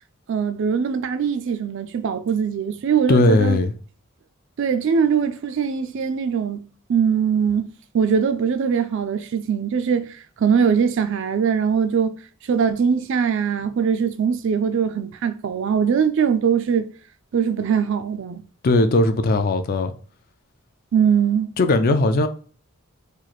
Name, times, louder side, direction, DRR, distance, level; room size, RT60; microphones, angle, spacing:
voice 1, 0.3-3.6 4.6-6.6 6.9-10.1 10.4-12.2 12.5-16.9 17.3-18.4 20.9-21.5, right 7 dB, 55° right, 0.3 m, -21 dB
voice 2, 3.1-3.7 18.6-19.9 21.6-22.3, left 2 dB, 40° left, 0.3 m, -18 dB
3.1 x 2.4 x 3.9 m
head